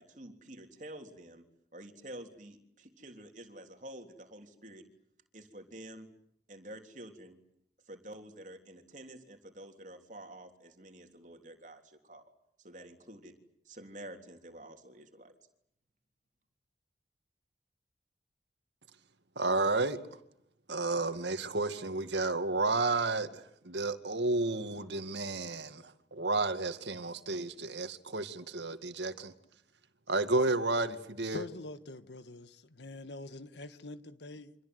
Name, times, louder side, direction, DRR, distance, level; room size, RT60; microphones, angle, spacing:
voice 1, 0.0-1.4 1.7-4.9 5.3-6.1 6.5-7.4 7.9-12.3 12.6-13.3 13.7-15.3, right 1 dB, 45° right, 3.5 m, -49 dB
voice 2, 19.4-20.0 20.7-29.3 30.1-31.4, right 2 dB, 85° right, 2.1 m, -32 dB
voice 3, 31.3-34.5, left 2 dB, 85° left, 1.6 m, -44 dB
28.5 x 25.5 x 8.0 m
head